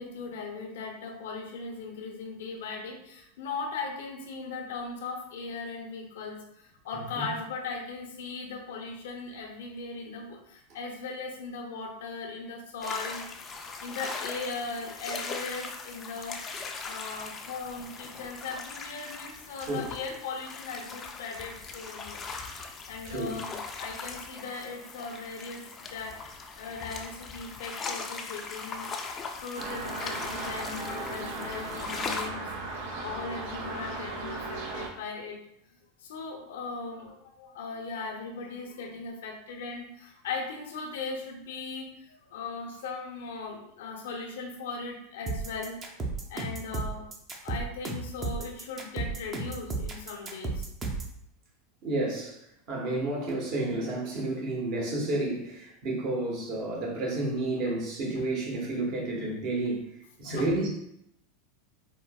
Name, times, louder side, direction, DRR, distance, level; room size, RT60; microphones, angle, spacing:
voice 1, 0.0-13.3 13.8-16.4 16.8-22.2 22.9-25.6 25.9-26.2 26.6-28.9 29.4-32.5 33.0-35.4 36.0-45.8 46.3-47.1 47.4-50.7 60.3-60.5, left 4 dB, 80° left, 2 dB, 0.6 m, -38 dB
voice 2, 7.0-7.3 19.6-19.9 23.0-23.3 51.8-52.4 52.7-59.8 60.2-60.8, right 2 dB, 55° right, -2 dB, 1.1 m, -31 dB
sound 1, 12.8-32.3, left 4 dB, 30° left, 0.4 m, -40 dB
sound 2, 29.5-34.9, right 3 dB, 75° right, 0.7 m, -37 dB
sound 3, 45.3-51.1, right 3 dB, 25° right, 0.6 m, -33 dB
4.4 x 2.0 x 2.3 m, 0.76 s
hypercardioid pair, 115°, 0 cm